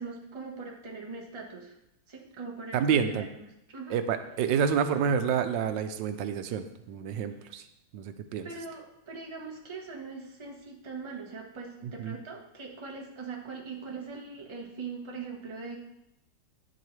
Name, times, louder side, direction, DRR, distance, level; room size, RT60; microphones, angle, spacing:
voice 1, 0.0-1.8 2.1-3.9 8.4-15.8, right 4 dB, 20° right, -1 dB, 1.0 m, -41 dB
voice 2, 2.7-3.3 3.9-7.6 7.9-8.5 12.0-12.1, right 7 dB, 85° right, 9 dB, 1.3 m, -28 dB
9.7 x 7.6 x 3.2 m, 0.83 s
omnidirectional pair, 2.0 m